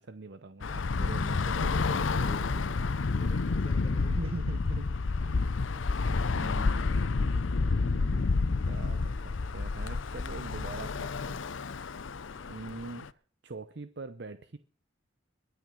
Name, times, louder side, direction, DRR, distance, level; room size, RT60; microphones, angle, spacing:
voice 1, 0.0-2.7 4.0-4.9 5.2-5.5 6.3-11.4 12.5-14.6, right 3 dB, 60° right, 11 dB, 0.8 m, -43 dB
Bus / Traffic noise roadway noise, 0.6-13.1, left 4 dB, 75° left, 0.7 m, -29 dB
voice 2, 3.1-4.6 5.7-6.1 12.3-12.6, right 1 dB, 30° right, 5 dB, 5.2 m, -53 dB
22.5 x 9.4 x 6.3 m, 0.44 s
head